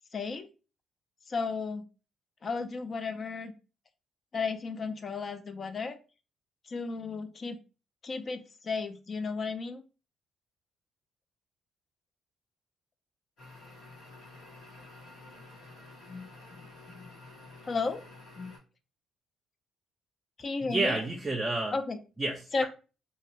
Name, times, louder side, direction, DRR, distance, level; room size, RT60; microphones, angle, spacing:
voice 1, 0.1-0.5 1.3-1.8 2.4-3.5 4.3-6.0 6.7-7.6 8.0-9.8 16.1-16.3 16.6-17.2 17.6-18.0 18.4-18.6 20.4-21.0 21.7-22.0 22.5-22.7, left 4 dB, 40° left, 0.4 m, -34 dB
sound 1, 13.4-18.6, left 2 dB, 90° left, 1.3 m, -50 dB
voice 2, 20.6-21.8 22.2-22.7, right 2 dB, 20° right, 0.4 m, -30 dB
2.6 x 2.0 x 2.9 m
cardioid pair, 95°, 0 cm